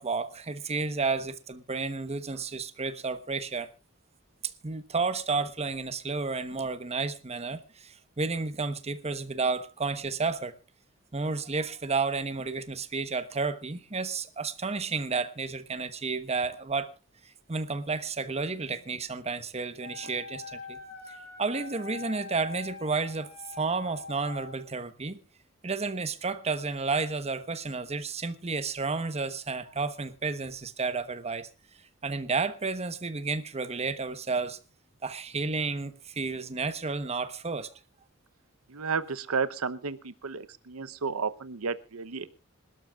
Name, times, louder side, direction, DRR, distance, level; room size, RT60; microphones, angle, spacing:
voice 1, 0.0-3.7 4.6-10.5 11.1-16.9 17.5-20.8 21.4-23.3 23.6-25.2 25.6-31.5 32.0-34.6 35.0-37.7, right 4 dB, 30° right, 1.1 m, -31 dB
Wind instrument woodwind instrument, 19.8-24.6, left 4 dB, 55° left, 6.4 m, -44 dB
voice 2, 38.7-42.4, right 5 dB, 90° right, 0.8 m, -32 dB
26.5 x 12.5 x 2.4 m
head